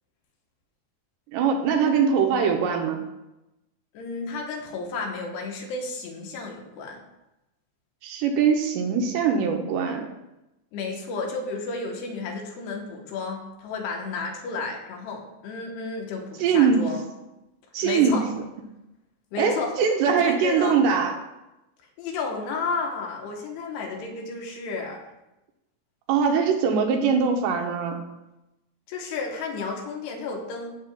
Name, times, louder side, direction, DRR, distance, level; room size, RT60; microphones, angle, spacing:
voice 1, 1.3-3.0 8.0-10.1 16.4-16.9 17.7-18.4 19.4-21.2 26.1-28.2, right 6 dB, 80° right, 3 dB, 2.7 m, -22 dB
voice 2, 3.9-7.0 10.7-17.0 17.8-18.3 19.3-19.7 20.1-20.8 22.0-25.0 28.9-30.8, left 4 dB, 75° left, 1 dB, 2.9 m, -32 dB
14.5 x 7.3 x 2.2 m, 0.94 s
omnidirectional pair, 5.2 m